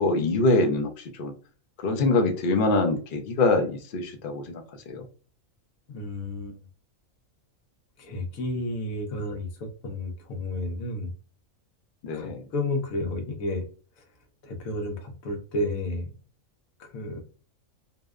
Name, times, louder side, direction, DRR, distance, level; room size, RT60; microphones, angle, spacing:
voice 1, 0.0-1.3 1.8-5.0 12.0-12.4, left 2 dB, 65° left, 4 dB, 0.5 m, -24 dB
voice 2, 5.9-6.6 8.0-11.1 12.1-13.7 14.4-16.1 16.8-17.2, left 1 dB, 80° left, 4 dB, 1.1 m, -31 dB
2.7 x 2.1 x 2.3 m, 0.38 s
omnidirectional pair, 1.4 m